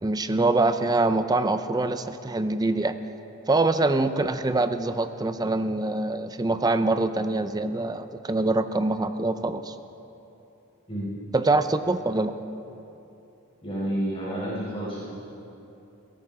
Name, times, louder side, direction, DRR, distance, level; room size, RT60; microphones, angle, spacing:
voice 1, 0.0-3.0 3.5-9.7 11.3-12.3, right 2 dB, 20° right, 10 dB, 0.5 m, -24 dB
voice 2, 13.6-15.0, equal, 25° left, -8 dB, 5.0 m, -30 dB
22.0 x 18.0 x 3.7 m, 2.9 s
head